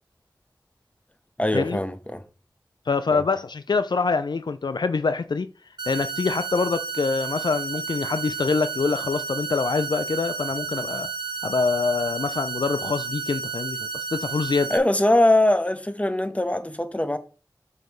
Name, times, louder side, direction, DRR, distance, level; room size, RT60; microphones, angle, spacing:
voice 1, 1.4-2.2 3.1-3.2 14.7-17.2, left 1 dB, 15° left, 1.0 m, -22 dB
voice 2, 2.9-5.5 5.9-11.1 11.4-14.7, left 4 dB, 65° left, 0.4 m, -25 dB
sound 1, 5.8-14.8, right 5 dB, 70° right, 1.4 m, -32 dB
6.5 x 6.5 x 3.2 m
cardioid pair, 40°, 8 cm